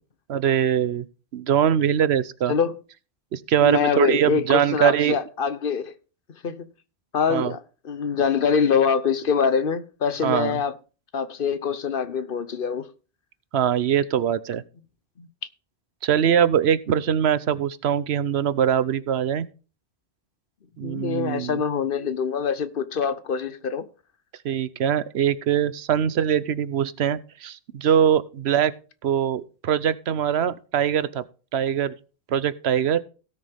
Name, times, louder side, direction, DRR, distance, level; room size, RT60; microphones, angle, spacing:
voice 1, 0.3-1.0 1.3-2.5 3.3-5.2 7.3-7.5 10.2-10.6 13.5-14.6 16.0-19.5 20.8-21.6 24.4-28.7 29.0-31.2 31.5-31.9 32.3-33.0, right 9 dB, 80° right, 1.0 m, -22 dB
voice 2, 3.6-5.9 6.4-6.6 7.1-7.6 7.8-10.8 11.1-12.9 15.2-15.3 20.8-23.8, left 6 dB, 60° left, 1.0 m, -24 dB
17.5 x 6.6 x 3.5 m
omnidirectional pair, 1.1 m